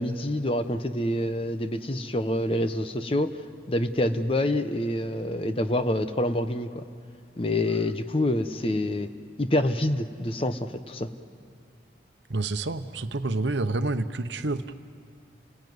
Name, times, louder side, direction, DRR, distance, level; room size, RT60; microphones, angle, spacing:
voice 1, 0.0-3.4 3.7-6.8 7.4-9.1 9.4-11.1, left 1 dB, 30° left, 9 dB, 0.9 m, -27 dB
voice 2, 12.3-14.7, right 2 dB, 80° right, 10 dB, 0.9 m, -28 dB
29.5 x 18.5 x 9.4 m, 2.4 s
head